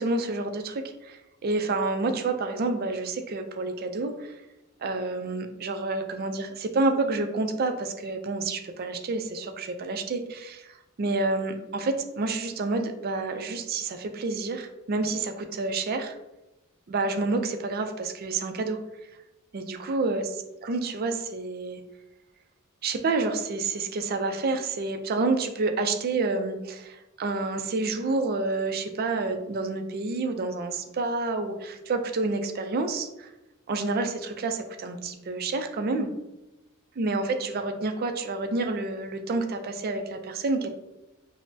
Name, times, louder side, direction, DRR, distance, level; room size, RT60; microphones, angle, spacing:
voice 1, 0.0-4.4 4.8-10.7 11.0-16.2 16.9-18.8 19.5-20.2 20.7-21.8 22.8-33.3 33.7-36.1 37.0-40.7, right 3 dB, 45° right, 6 dB, 0.4 m, -29 dB
5.3 x 2.0 x 2.6 m, 0.97 s
head